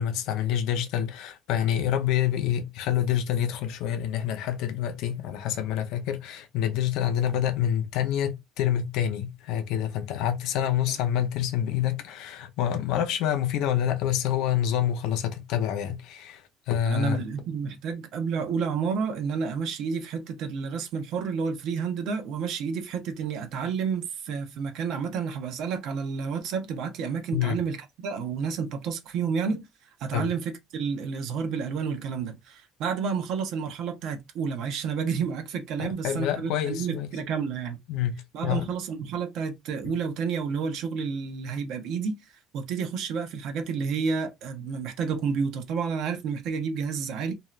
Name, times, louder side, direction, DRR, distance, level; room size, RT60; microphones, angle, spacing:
voice 1, 0.0-17.2 27.3-27.6 30.1-30.3 35.8-37.1 37.9-38.7 39.8-39.9, left 10 dB, 65° left, 0.6 m, -27 dB
voice 2, 16.8-27.8 28.0-29.7 30.0-37.8 38.3-42.2 42.5-47.3, right 6 dB, 55° right, 0.7 m, -30 dB
2.7 x 2.4 x 3.1 m
cardioid pair, 180°, 0 cm